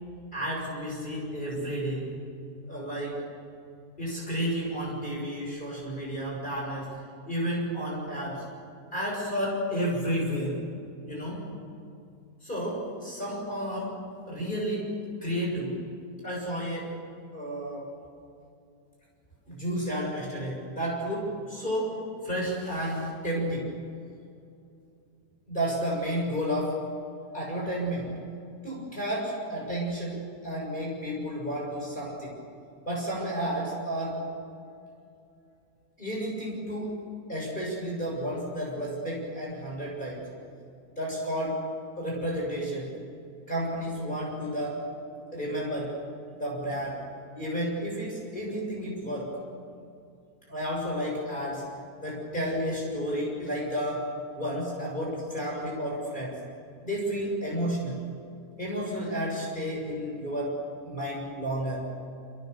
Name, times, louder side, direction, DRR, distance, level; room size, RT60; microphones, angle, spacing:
voice 1, 0.3-2.1 2.7-3.2 4.0-6.9 7.3-8.5 8.9-10.6 11.1-11.5 12.4-14.0 14.3-15.8 16.2-17.0 17.3-17.9 19.5-23.8 25.5-26.9 27.3-28.2 28.6-32.4 32.9-34.3 36.0-37.0 37.3-40.3 41.0-41.6 42.0-42.9 43.5-44.9 45.3-46.0 46.3-47.0 47.4-49.4 50.5-51.7 52.0-56.4 56.8-58.0 58.6-61.9, equal, 30° left, -3 dB, 7.1 m, -31 dB
28.5 x 27.5 x 6.9 m, 2.5 s
omnidirectional pair, 1.7 m